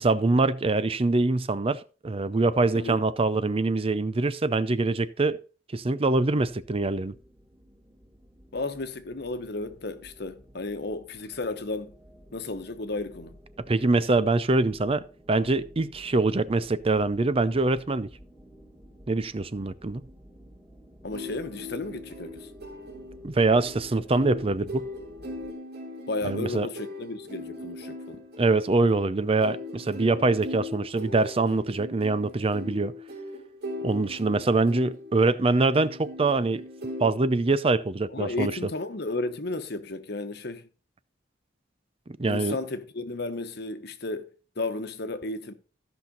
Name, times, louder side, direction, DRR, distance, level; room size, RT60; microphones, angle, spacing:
voice 1, 0.0-5.4 5.7-7.2 13.7-18.1 19.1-20.0 23.2-24.9 26.2-26.7 28.4-32.9 33.8-36.6 37.0-38.7 42.2-42.6, right 3 dB, 30° right, 0.5 m, -24 dB
sound 1, 6.4-25.5, equal, 10° right, 2.2 m, -52 dB
voice 2, 8.5-11.9 12.3-13.4 21.0-22.5 26.1-28.2 38.1-40.6 42.3-44.3 44.6-45.5, left 2 dB, 60° left, 1.2 m, -33 dB
sound 2, 21.1-37.1, left 1 dB, 60° right, 2.6 m, -40 dB
14.5 x 5.9 x 4.0 m
head